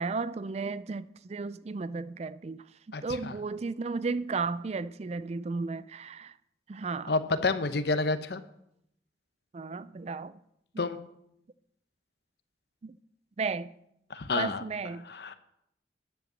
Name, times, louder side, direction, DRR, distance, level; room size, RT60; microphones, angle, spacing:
voice 1, 0.0-6.4 6.7-7.1 9.5-10.4 10.7-10.9 12.8-13.0 13.4-13.7 14.4-15.1, right 4 dB, 35° right, 0.4 m, -34 dB
voice 2, 2.9-3.3 7.1-8.4 10.8-11.0 14.1-14.6 15.1-15.3, left 3 dB, 65° left, 0.8 m, -29 dB
10.0 x 8.0 x 7.4 m
head